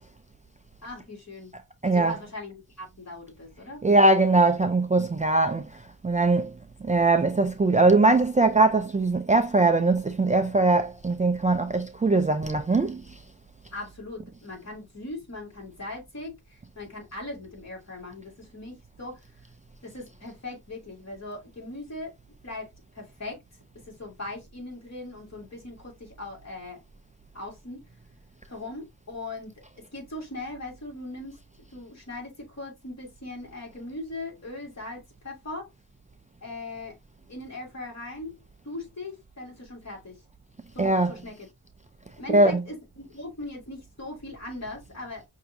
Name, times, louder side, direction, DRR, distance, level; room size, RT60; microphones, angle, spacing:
voice 1, 0.8-1.5 1.8-3.8 13.7-19.5 19.8-22.1 22.4-23.4 23.9-26.8 27.3-27.9 28.5-31.4 31.7-35.7 36.4-37.0 37.3-38.4 38.6-40.2 40.7-41.5 42.2-45.2, left 2 dB, 45° left, 2.3 m, -39 dB
voice 2, 1.8-2.2 3.8-5.7 6.0-6.5 6.8-13.0 40.8-41.2 42.3-42.6, right 2 dB, 20° right, 0.3 m, -21 dB
5.6 x 2.7 x 2.5 m
wide cardioid pair, 105°, 35 cm